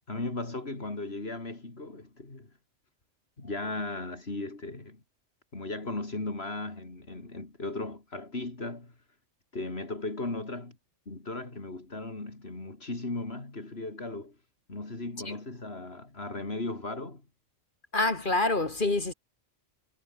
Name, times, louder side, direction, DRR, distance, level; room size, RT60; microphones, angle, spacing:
voice 1, 0.1-2.5 3.4-5.0 5.5-8.9 9.5-10.8 11.1-14.4 14.7-17.3, left 2 dB, 60° left, 3.8 m, -36 dB
voice 2, 17.9-19.1, left 2 dB, 45° left, 2.2 m, -26 dB
omnidirectional pair, 1.2 m